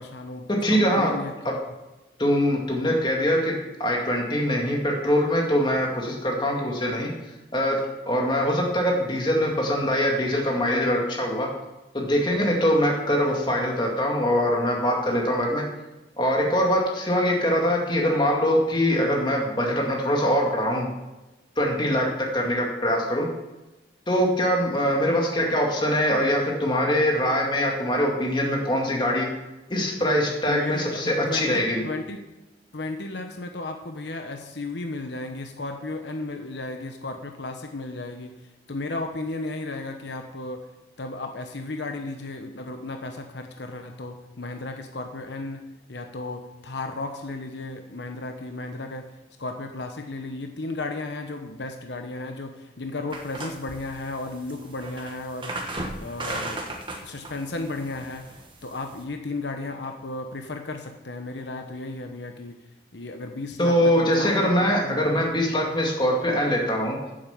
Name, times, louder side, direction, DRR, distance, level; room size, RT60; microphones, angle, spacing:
voice 1, 0.0-1.6 30.5-32.2 32.7-40.6 41.0-49.1 49.4-56.6 57.0-58.3 58.6-62.6 62.9-65.4, left 2 dB, 70° left, 5 dB, 1.0 m, -34 dB
voice 2, 0.6-1.1 1.4-1.5 2.2-3.5 3.8-7.1 7.5-7.8 8.1-11.5 11.9-15.6 16.2-20.9 21.6-23.3 24.1-29.3 29.7-31.8 63.6-67.0, equal, 25° left, -1 dB, 2.2 m, -23 dB
sound 1, 53.1-59.0, right 2 dB, 25° right, 1.4 m, -36 dB
9.0 x 7.8 x 7.2 m, 1.0 s
head